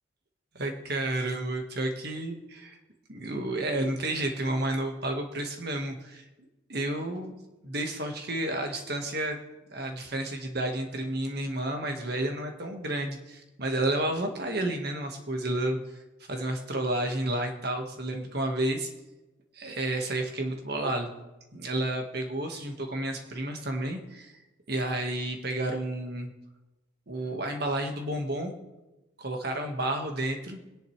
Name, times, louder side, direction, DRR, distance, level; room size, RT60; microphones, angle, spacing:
voice 1, 0.5-2.8 3.1-6.2 6.7-7.3 7.6-9.4 9.7-15.8 16.3-18.9 19.5-21.1 21.5-24.3 24.7-26.3 27.1-28.5 29.2-30.6, right 1 dB, 50° right, 4 dB, 1.7 m, -31 dB
22.0 x 10.5 x 3.3 m, 1.0 s
head